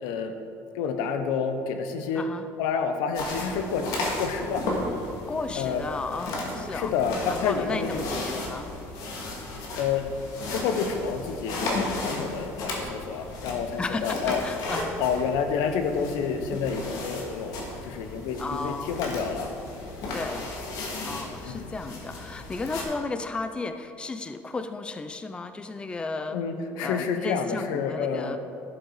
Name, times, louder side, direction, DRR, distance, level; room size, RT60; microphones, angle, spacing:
voice 1, 0.0-0.3 0.7-2.3 2.6-4.7 5.6-5.8 6.7-7.9 9.7-10.1 10.5-14.4 15.0-19.5 21.4-21.8 26.3-28.4, left 6 dB, 85° left, 7 dB, 1.0 m, -29 dB
voice 2, 2.2-2.5 5.3-6.9 7.3-8.8 13.8-15.0 18.4-18.9 20.1-20.5 21.0-28.4, left 3 dB, 15° left, 9 dB, 0.5 m, -34 dB
sound 1, 3.2-22.8, left 2 dB, 65° left, 2.1 m, -34 dB
12.0 x 7.8 x 4.8 m, 2.6 s
cardioid pair, 125°, 7 cm